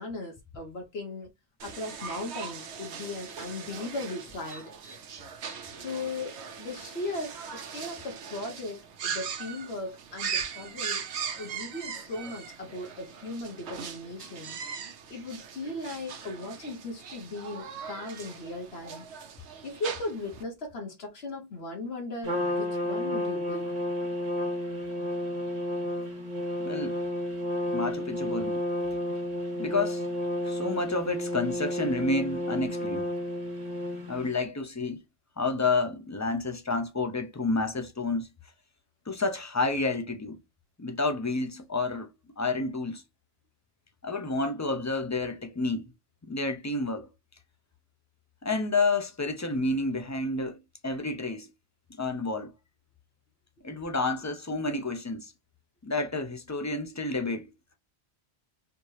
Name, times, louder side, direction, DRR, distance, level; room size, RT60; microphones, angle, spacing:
voice 1, 0.0-1.3 1.6-4.6 5.8-11.1 11.4-14.6 15.1-19.0 19.6-23.7, left 2 dB, 70° left, 1.2 m, -37 dB
sound 1, 1.6-20.4, right 6 dB, 85° right, 1.0 m, -39 dB
Trumpet, 22.2-34.4, left 1 dB, 40° right, 0.9 m, -31 dB
voice 2, 26.6-26.9 27.7-28.6 29.6-30.1 30.4-33.1 34.1-35.0 35.4-38.3 39.1-40.4 40.8-43.0 44.0-45.9 46.2-47.1 48.4-51.5 52.0-52.5 53.6-55.3 55.8-57.5, left 3 dB, 25° left, 0.4 m, -30 dB
4.4 x 2.7 x 3.1 m
omnidirectional pair, 1.1 m